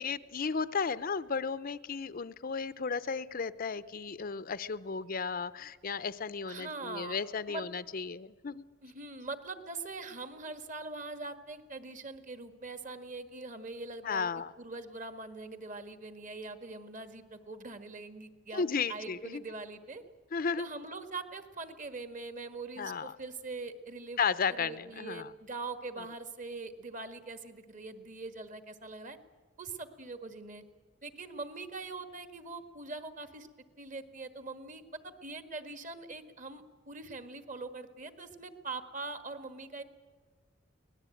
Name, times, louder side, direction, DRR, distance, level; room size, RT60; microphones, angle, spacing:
voice 1, 0.0-8.7 14.0-14.5 18.5-19.4 20.3-20.7 22.8-23.1 24.2-25.3, left 5 dB, 45° left, 15 dB, 0.6 m, -34 dB
voice 2, 6.5-7.2 7.5-7.6 8.8-14.3 14.6-18.6 18.9-20.0 20.6-24.2 24.5-29.2 29.6-30.6 31.0-33.5 33.8-39.8, right 3 dB, 40° right, 10 dB, 1.6 m, -42 dB
24.0 x 18.5 x 9.1 m, 1.4 s
head